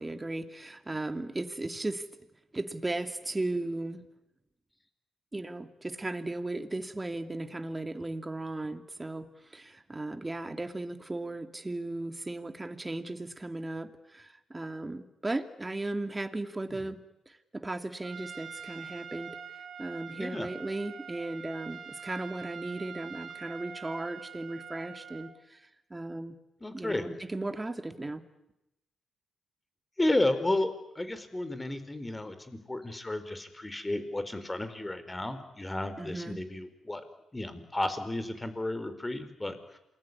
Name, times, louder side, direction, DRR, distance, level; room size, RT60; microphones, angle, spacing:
voice 1, 0.0-2.0 2.5-4.0 5.3-17.0 17.3-19.4 19.8-26.4 26.7-28.2 36.0-36.4, right 2 dB, 20° right, 8 dB, 2.6 m, -36 dB
Trumpet, 18.0-25.3, right 7 dB, 60° right, 3.4 m, -44 dB
voice 2, 26.6-27.1 30.0-37.0 37.3-39.8, left 1 dB, 15° left, 11 dB, 4.4 m, -32 dB
27.5 x 21.5 x 9.9 m, 0.88 s
cardioid pair, 70°, 0 cm